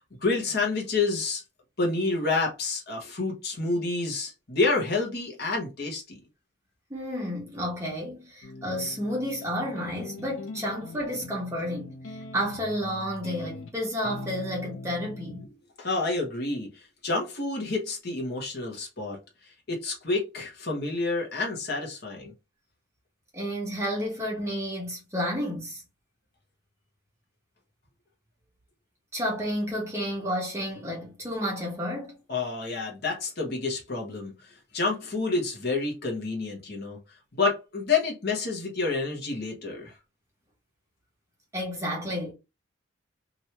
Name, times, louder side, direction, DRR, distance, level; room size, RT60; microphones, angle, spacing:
voice 1, 0.2-1.4 1.8-6.2 15.8-19.2 19.7-22.3 32.3-37.0 37.3-39.9, left 3 dB, 50° left, 1.0 m, -29 dB
voice 2, 6.9-11.9 12.3-15.4 23.3-25.8 29.1-32.1 41.5-42.3, equal, 15° right, 1.2 m, -31 dB
sound 1, 8.4-15.5, left 2 dB, 75° left, 0.5 m, -42 dB
2.9 x 2.6 x 3.2 m
head